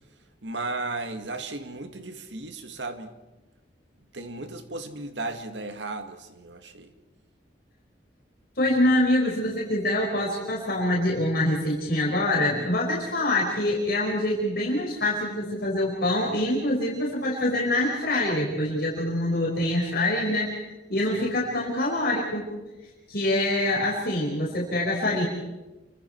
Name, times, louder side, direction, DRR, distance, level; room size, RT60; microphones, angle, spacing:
voice 1, 0.4-3.1 4.1-6.9 21.1-21.3, right 2 dB, 80° right, 2.0 m, -35 dB
voice 2, 8.6-20.6 20.9-22.5 23.1-25.2, left 1 dB, 60° left, 5.2 m, -25 dB
29.5 x 25.0 x 4.6 m
head